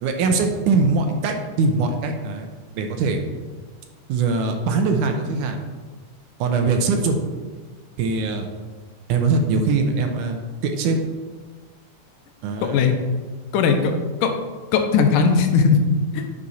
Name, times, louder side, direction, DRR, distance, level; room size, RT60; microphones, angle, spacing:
voice 1, 0.0-2.5 2.7-3.2 4.1-5.6 6.4-7.2 8.0-8.5 9.1-11.0 12.4-12.9, right 4 dB, 75° right, 5 dB, 2.1 m, -22 dB
voice 2, 12.6-13.0 13.5-13.9 14.2-14.3 14.7-15.8 16.1-16.3, left 5 dB, 80° left, 5 dB, 2.3 m, -18 dB
10.0 x 5.7 x 4.1 m, 1.4 s
omnidirectional pair, 3.9 m